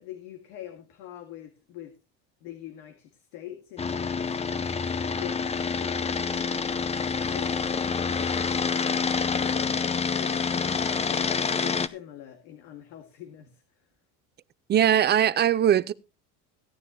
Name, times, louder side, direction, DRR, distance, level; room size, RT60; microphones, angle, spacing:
voice 1, 0.0-1.9 2.4-4.7 5.2-6.9 7.3-9.1 9.3-9.7 10.1-13.6, left 11 dB, 90° left, 2.1 m, -43 dB
sound 1, 3.8-11.9, left 5 dB, 20° left, 0.6 m, -27 dB
voice 2, 14.7-15.9, right 10 dB, 30° right, 0.5 m, -20 dB
16.5 x 9.7 x 3.0 m
cardioid pair, 135°, 36 cm